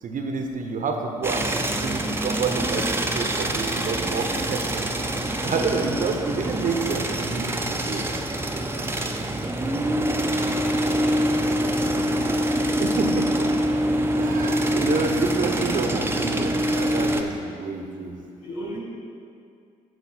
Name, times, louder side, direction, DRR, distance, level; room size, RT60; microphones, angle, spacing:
voice 1, 0.0-4.9 5.4-8.1 12.8-13.5 13.9-18.2, right 4 dB, 50° right, 3 dB, 0.9 m, -28 dB
sound 1, 1.2-17.2, right 1 dB, 15° right, 0.7 m, -25 dB
voice 2, 10.8-12.3 18.4-18.8, left 1 dB, 85° left, -7 dB, 1.7 m, -35 dB
11.5 x 4.1 x 4.3 m, 2.4 s
hypercardioid pair, 45°, 17 cm